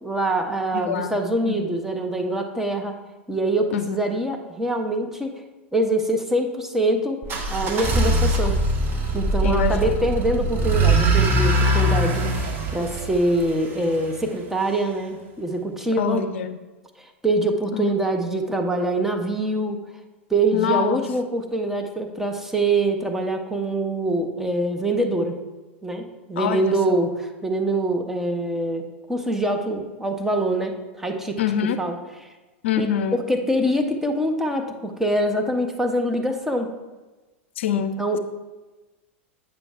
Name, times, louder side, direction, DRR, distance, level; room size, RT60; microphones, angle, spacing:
voice 1, 0.0-3.0 3.3-5.3 5.7-7.2 7.5-8.5 9.1-16.2 17.0-19.8 20.3-25.3 25.8-27.1 27.4-31.4 31.8-32.0 32.8-36.7 38.0-38.2, right 1 dB, 5° right, 3 dB, 0.8 m, -24 dB
voice 2, 0.7-1.2 1.4-1.8 3.7-4.0 9.4-10.0 16.0-16.6 17.7-17.9 20.5-21.1 26.4-27.0 31.4-31.8 32.6-33.2 37.6-38.2, left 9 dB, 70° left, 11 dB, 0.4 m, -25 dB
sound 1, 7.2-14.1, right 1 dB, 30° right, 1.3 m, -22 dB
8.9 x 6.7 x 2.5 m, 1.2 s
hypercardioid pair, 100°, 7 cm